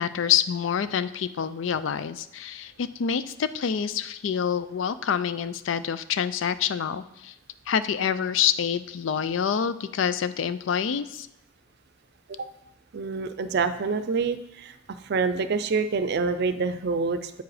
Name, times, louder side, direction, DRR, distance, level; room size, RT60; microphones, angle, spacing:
voice 1, 0.0-7.3 7.7-11.3, left 8 dB, 70° left, 14 dB, 0.4 m, -27 dB
voice 2, 12.9-14.7 15.0-17.4, right 4 dB, 55° right, 11 dB, 0.5 m, -27 dB
7.8 x 4.8 x 4.9 m, 0.84 s
head